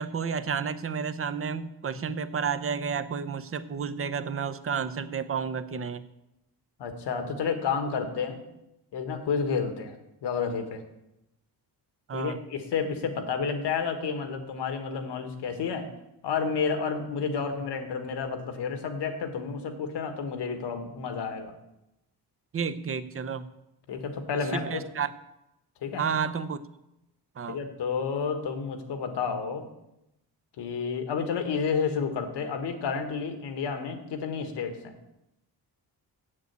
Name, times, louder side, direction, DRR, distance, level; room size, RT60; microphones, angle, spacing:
voice 1, 0.0-6.0 12.1-12.4 22.5-23.5 24.5-25.1 26.0-26.6 27.4-27.6, right 6 dB, 35° right, 12 dB, 0.6 m, -31 dB
voice 2, 6.8-8.4 8.9-9.9 10.2-10.8 12.1-15.9 16.2-21.5 23.9-24.8 25.8-26.0 27.5-29.7 30.6-34.9, left 5 dB, 85° left, 7 dB, 1.5 m, -30 dB
8.1 x 7.5 x 8.1 m, 0.88 s
wide cardioid pair, 135°, 40 cm